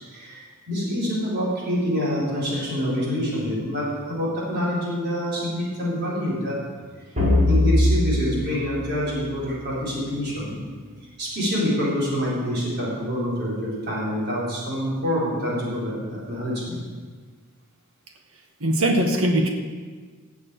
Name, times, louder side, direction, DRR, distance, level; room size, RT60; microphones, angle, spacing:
voice 1, 0.1-6.5 7.5-10.6 11.2-16.8, equal, 50° right, -7 dB, 4.3 m, -26 dB
sound 1, 7.2-9.8, left 1 dB, 35° right, 4.0 m, -22 dB
voice 2, 18.6-19.5, right 1 dB, 70° right, 3 dB, 1.5 m, -20 dB
17.5 x 7.3 x 4.8 m, 1.5 s
head